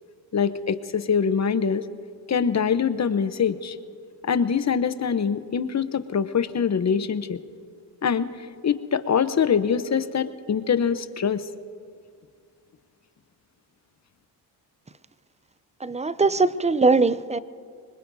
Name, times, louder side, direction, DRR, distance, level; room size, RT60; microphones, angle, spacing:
voice 1, 0.3-1.9 2.3-3.8 4.2-7.4 8.0-8.3 8.6-11.4, left 6 dB, 35° left, 13 dB, 0.8 m, -24 dB
voice 2, 15.8-17.4, right 3 dB, 15° right, 16 dB, 0.4 m, -21 dB
25.5 x 21.0 x 2.7 m, 2.2 s
cardioid pair, 70°, 47 cm